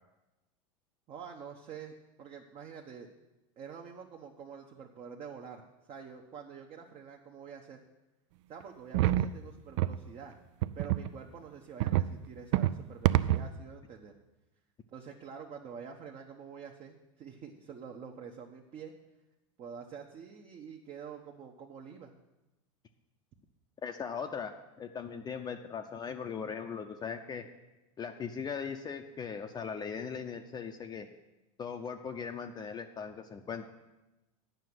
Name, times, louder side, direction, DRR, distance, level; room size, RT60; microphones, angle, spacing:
voice 1, 1.1-3.1 3.6-7.8 8.5-10.3 10.7-14.1 14.9-18.9 19.6-22.1, right 6 dB, 35° right, 1 dB, 1.0 m, -47 dB
sound 1, 8.9-9.3 9.8-10.0 10.6-11.1 11.8-12.1 12.5-12.8 13.0-13.5, right 14 dB, 60° right, 0.4 m, -26 dB
voice 2, 23.8-24.5 24.8-27.5 28.0-31.1 31.6-33.7, left 6 dB, 25° left, 4 dB, 0.6 m, -39 dB
9.2 x 5.8 x 7.8 m, 1.0 s
hypercardioid pair, 105°, 17 cm